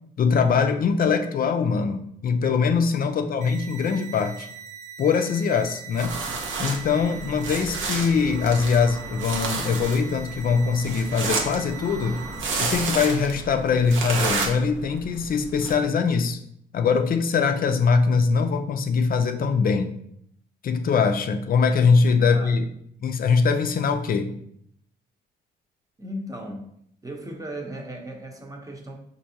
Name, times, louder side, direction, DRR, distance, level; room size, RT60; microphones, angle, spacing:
voice 1, 0.2-4.5 5.0-6.2 6.6-12.2 12.6-16.4 16.7-19.9 20.6-22.6 23.0-24.3, left 5 dB, 45° left, 7 dB, 0.4 m, -22 dB
voice 2, 3.1-3.5 22.2-22.6 26.0-26.8 27.0-29.0, equal, 15° right, 2 dB, 0.8 m, -37 dB
sound 1, 3.4-12.4, right 8 dB, 35° right, 0.5 m, -42 dB
sound 2, 5.9-15.7, right 3 dB, 75° right, 0.8 m, -31 dB
5.2 x 2.7 x 2.8 m, 0.70 s
cardioid pair, 90°, 20 cm